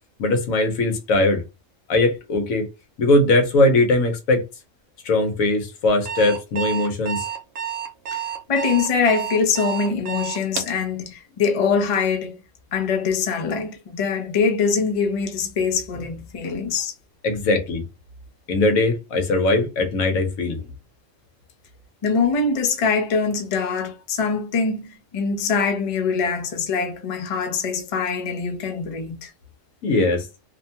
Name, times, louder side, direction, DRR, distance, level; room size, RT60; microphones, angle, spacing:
voice 1, 0.2-1.4 1.9-2.7 3.0-4.4 5.0-7.2 16.4-16.6 17.2-17.8 18.5-20.6 29.8-30.3, left 2 dB, 80° left, 1.2 m, -20 dB
Alarm, 5.9-10.8, right 9 dB, 70° right, 1.0 m, -29 dB
voice 2, 8.5-12.4 12.7-16.9 22.0-29.3, left 5 dB, 55° left, 0.3 m, -23 dB
2.8 x 2.2 x 2.7 m
omnidirectional pair, 1.4 m